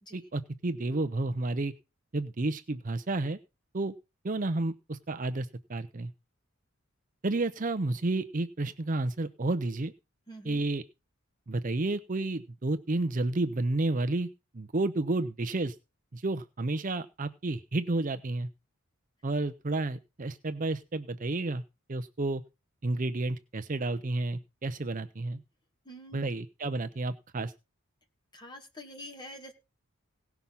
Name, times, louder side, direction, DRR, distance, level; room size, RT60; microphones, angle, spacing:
voice 1, 0.1-1.7 2.1-3.4 3.7-3.9 4.2-6.1 7.2-9.9 10.4-10.8 11.5-14.3 14.5-15.7 16.1-18.5 19.2-21.6 21.9-22.4 22.8-25.4 26.1-27.5, right 2 dB, 35° right, 10 dB, 0.6 m, -31 dB
voice 2, 10.3-10.6 25.8-26.3 28.3-29.5, equal, 20° left, 3 dB, 2.3 m, -46 dB
17.5 x 5.8 x 5.5 m, 0.28 s
head